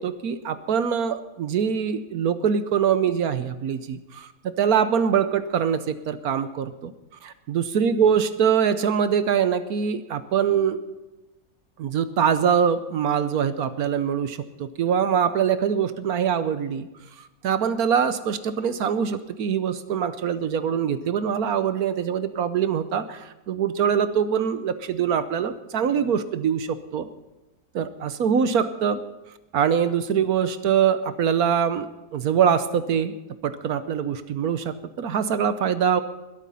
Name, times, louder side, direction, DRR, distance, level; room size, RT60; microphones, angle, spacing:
voice 1, 0.0-6.9 7.2-10.8 11.8-16.9 17.4-27.1 27.7-29.0 29.5-33.1 33.4-36.0, right 7 dB, 70° right, 12 dB, 1.3 m, -23 dB
21.0 x 8.9 x 5.5 m, 1.0 s
omnidirectional pair, 1.7 m